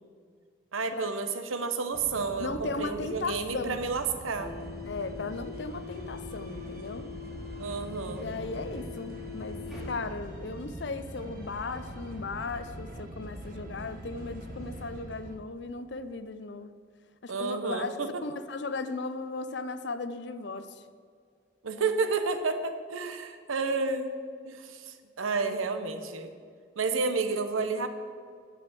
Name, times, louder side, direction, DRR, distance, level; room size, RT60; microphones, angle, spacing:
voice 1, 0.7-4.6 7.6-8.3 17.3-18.1 21.6-24.1 24.4-26.3 26.8-27.9, right 4 dB, 90° right, 8 dB, 0.9 m, -31 dB
sound 1, 1.9-14.9, left 2 dB, ahead, 2.3 m, -42 dB
voice 2, 2.4-3.9 4.9-7.1 8.2-16.7 17.2-18.0 18.2-20.8, left 3 dB, 60° left, 11 dB, 0.6 m, -36 dB
sound 2, 4.4-15.4, right 1 dB, 45° right, 1.3 m, -47 dB
9.0 x 6.9 x 7.4 m, 2.1 s
head